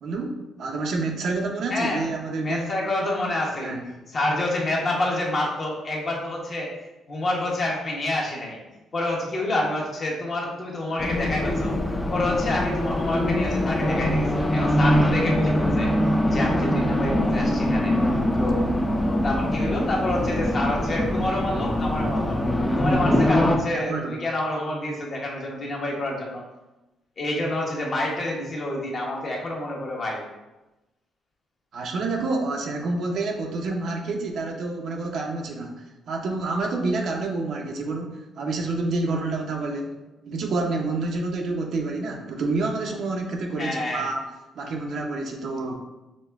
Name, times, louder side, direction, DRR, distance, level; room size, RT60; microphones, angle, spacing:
voice 1, 0.0-2.7 3.6-3.8 23.7-24.1 31.7-39.9 40.3-44.2 44.5-45.8, right 3 dB, 65° right, 1 dB, 0.7 m, -28 dB
voice 2, 1.7-2.0 2.4-3.8 4.1-6.7 7.1-8.6 8.9-11.7 12.1-15.9 16.3-17.9 18.4-18.6 19.0-22.4 22.7-26.4 27.2-30.2 43.6-44.0, left 1 dB, 45° left, -2 dB, 1.1 m, -28 dB
Race car auto racing, 11.0-23.6, left 1 dB, 15° left, 0.5 m, -23 dB
5.1 x 2.2 x 3.5 m, 1.0 s
cardioid pair, 90°, 0 cm